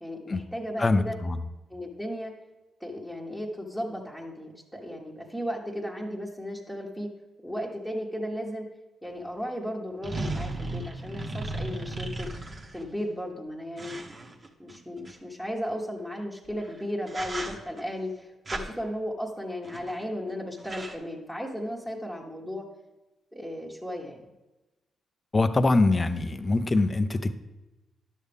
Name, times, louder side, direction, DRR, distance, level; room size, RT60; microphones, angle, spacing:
voice 1, 0.0-1.2 1.7-2.3 2.8-7.1 7.4-8.7 9.0-12.3 12.7-14.0 14.6-22.7 23.3-24.2, equal, 5° right, -4 dB, 1.4 m, -35 dB
voice 2, 0.8-1.4 25.3-27.3, left 2 dB, 35° left, 10 dB, 0.6 m, -23 dB
sound 1, 9.1-9.2 10.0-12.9 13.8-15.1 16.5-16.7 17.1-17.8 18.5-18.7 19.6-20.0 20.3-20.4 20.6-20.9, right 2 dB, 40° right, 1.3 m, -35 dB
10.5 x 6.5 x 3.5 m, 1.1 s
supercardioid pair, 50°, 0 cm